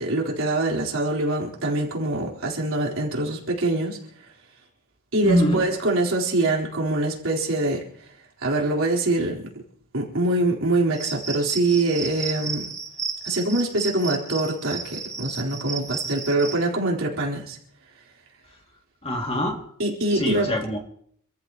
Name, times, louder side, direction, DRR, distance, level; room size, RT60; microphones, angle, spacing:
voice 1, 0.0-4.0 5.1-7.8 8.4-9.4 9.9-12.7 13.2-17.6 19.8-20.5, right 2 dB, 65° right, -1 dB, 4.2 m, -24 dB
voice 2, 5.2-5.6 19.0-19.6 20.1-20.8, equal, 25° left, 1 dB, 2.6 m, -23 dB
Cricket, 10.9-16.5, right 5 dB, 15° right, 6.5 m, -33 dB
28.0 x 14.5 x 3.0 m, 0.64 s
head